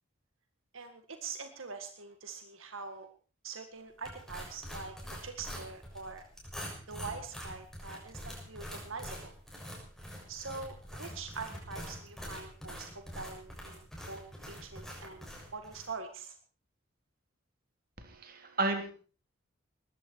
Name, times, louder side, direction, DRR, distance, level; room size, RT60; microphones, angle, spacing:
voice 1, 0.7-3.1 3.4-5.0 5.2-6.2 6.9-9.3 10.3-14.2 14.5-16.4, right 4 dB, 75° right, 7 dB, 1.9 m, -44 dB
sound 1, 4.0-15.9, equal, ahead, 6.8 m, -45 dB
voice 2, 18.0-18.9, right 3 dB, 45° right, 5 dB, 3.7 m, -33 dB
20.0 x 15.0 x 4.7 m, 0.39 s
head